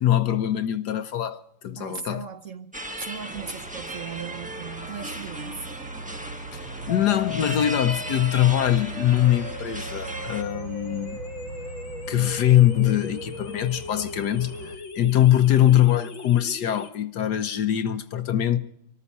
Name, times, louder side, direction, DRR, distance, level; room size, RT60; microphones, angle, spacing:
voice 1, 0.0-2.2 6.5-11.2 12.1-18.6, left 12 dB, 65° left, 1.3 m, -22 dB
voice 2, 1.8-5.8, right 6 dB, 55° right, 1.0 m, -38 dB
sound 1, 2.7-10.4, right 1 dB, 5° right, 0.8 m, -37 dB
sound 2, 3.3-14.8, right 4 dB, 70° right, 1.6 m, -41 dB
sound 3, 6.9-16.9, left 4 dB, 90° left, 2.2 m, -38 dB
25.0 x 14.0 x 4.2 m
omnidirectional pair, 2.1 m